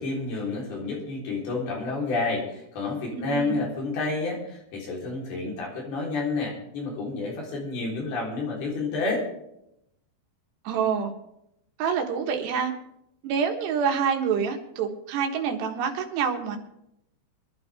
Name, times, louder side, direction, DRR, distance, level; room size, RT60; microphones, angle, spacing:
voice 1, 0.0-9.3, left 3 dB, 65° left, -2 dB, 5.7 m, -30 dB
voice 2, 3.1-3.6 10.7-11.1 11.8-12.7 13.2-16.6, right 6 dB, 80° right, 3 dB, 3.6 m, -27 dB
23.5 x 11.5 x 3.5 m, 0.81 s
omnidirectional pair, 4.9 m